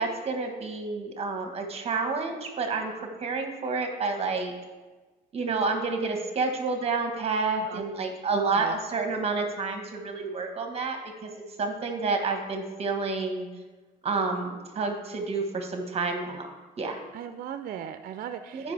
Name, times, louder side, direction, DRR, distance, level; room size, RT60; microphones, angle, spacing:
voice 1, 0.0-4.5 5.3-11.3 11.6-13.5 14.0-16.5 16.8-17.0 18.5-18.7, right 4 dB, 35° right, 4 dB, 1.2 m, -29 dB
voice 2, 7.5-7.8 8.5-8.7 17.1-18.7, right 9 dB, 60° right, 9 dB, 0.5 m, -38 dB
14.5 x 5.3 x 3.3 m, 1.2 s
cardioid pair, 110°, 17 cm